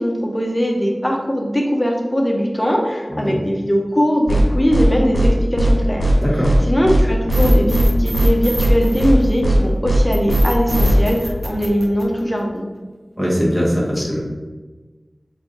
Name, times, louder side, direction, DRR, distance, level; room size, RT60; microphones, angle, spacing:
voice 1, 0.0-12.7 14.0-14.1, equal, 20° left, 0 dB, 0.6 m, -20 dB
sound 1, 4.3-4.4 4.7-4.8 5.1-5.3 5.6-5.7 6.0-6.1 6.4-6.6 6.8-7.0 7.3-7.8 8.1-8.3 8.6-8.7 9.0-9.1 9.4-9.6 9.8-10.0 10.3-10.4 10.7-10.9, right 2 dB, 60° left, 1.3 m, -17 dB
voice 2, 6.2-6.6 13.2-14.2, equal, 10° right, -5 dB, 1.1 m, -20 dB
sound 2, 7.3-9.6 10.1-12.6, right 1 dB, 80° right, 0.5 m, -28 dB
3.3 x 2.5 x 3.7 m, 1.3 s
wide cardioid pair, 65°, 0 cm